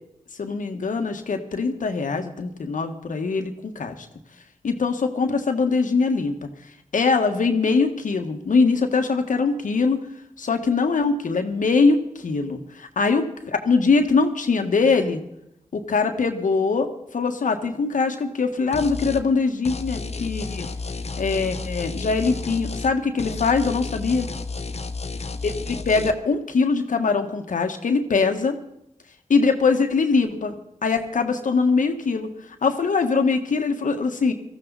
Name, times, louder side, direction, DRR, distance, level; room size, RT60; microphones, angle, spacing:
voice 1, 0.4-4.1 4.6-6.5 6.9-10.0 10.4-15.2 15.7-20.7 21.2-24.3 25.4-28.6 29.3-30.5 30.8-32.3 32.6-34.3, left 4 dB, 75° left, 6 dB, 1.6 m, -22 dB
sound 1, 18.7-19.2 19.6-22.9 23.2-26.1, left 4 dB, 50° left, 1.1 m, -32 dB
19.0 x 14.0 x 4.1 m, 0.80 s
cardioid pair, 45°, 13 cm